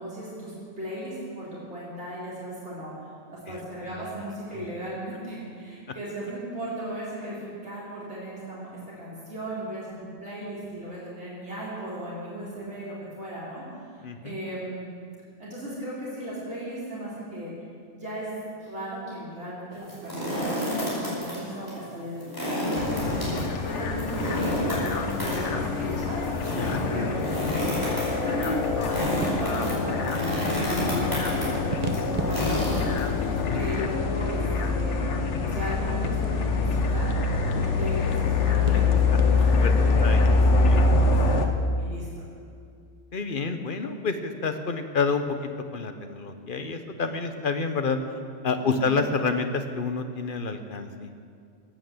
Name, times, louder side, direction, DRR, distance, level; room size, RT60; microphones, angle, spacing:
voice 1, 0.0-8.7 9.0-14.9 15.4-17.5 17.9-18.3 18.6-26.3 26.7-28.6 28.9-31.5 31.8-32.9 33.2-35.0 35.4-37.2 37.8-38.8 39.3-42.2 48.6-49.0, right 1 dB, 75° right, -8 dB, 4.2 m, -37 dB
voice 2, 14.0-14.4 26.6-27.1 38.7-39.2 39.6-39.7 40.0-40.2 40.7-40.8 43.1-48.0 48.4-51.1, left 4 dB, 50° left, 7 dB, 1.1 m, -29 dB
sound 1, 19.7-21.4 21.7-21.8 22.2-33.4, equal, 20° left, 5.0 m, -30 dB
sound 2, 22.8-41.5, left 3 dB, 90° left, 1.3 m, -25 dB
sound 3, 28.9-40.2, right 2 dB, 35° right, 1.1 m, -41 dB
15.0 x 9.2 x 7.8 m, 2.2 s
omnidirectional pair, 1.2 m